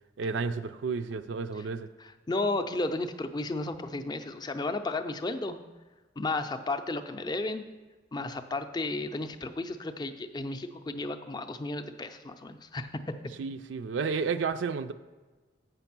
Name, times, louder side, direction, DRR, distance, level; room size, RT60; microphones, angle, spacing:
voice 1, 0.2-1.9 13.4-14.9, right 5 dB, 80° right, 10 dB, 0.4 m, -31 dB
voice 2, 2.0-5.6 6.2-7.6 8.1-13.2, left 2 dB, 25° left, 7 dB, 0.4 m, -33 dB
8.0 x 5.9 x 5.9 m, 1.3 s
head